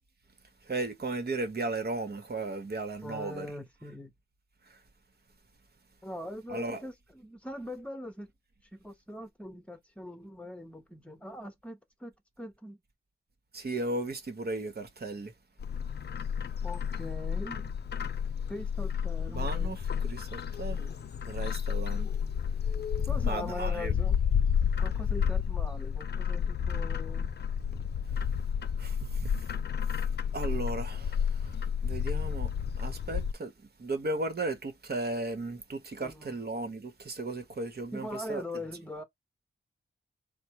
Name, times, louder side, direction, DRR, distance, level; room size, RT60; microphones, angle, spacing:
voice 1, 0.7-3.5 6.5-6.8 13.5-15.3 19.3-20.9 21.3-22.1 23.2-23.9 28.8-29.5 30.3-32.5 32.8-33.5 33.8-38.4, right 2 dB, 50° right, 1.2 m, -35 dB
voice 2, 3.0-4.1 6.0-8.3 8.7-12.8 16.6-17.7 18.5-19.7 23.1-24.2 24.8-27.3 36.0-36.4 37.9-39.0, left 1 dB, 5° left, 1.1 m, -42 dB
Bird, 15.6-33.3, left 7 dB, 55° left, 0.4 m, -31 dB
4.4 x 2.2 x 4.6 m
wide cardioid pair, 125°, 21 cm